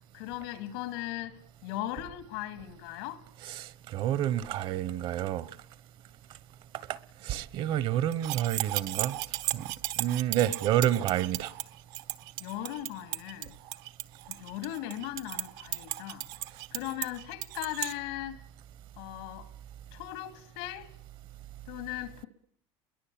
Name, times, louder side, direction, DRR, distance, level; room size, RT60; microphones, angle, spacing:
voice 1, 0.1-3.2 12.4-13.6 14.3-16.3 16.7-18.4 19.0-19.5 19.9-20.9 21.7-22.3, left 14 dB, 90° left, 2.9 m, -38 dB
voice 2, 3.4-5.5 6.9-7.0 7.2-9.2 9.5-9.7 10.0-11.5, right 12 dB, 45° right, 1.1 m, -29 dB
sound 1, 8.1-17.9, right 17 dB, 70° right, 1.3 m, -36 dB
28.0 x 22.0 x 8.7 m
cardioid pair, 165°, 12 cm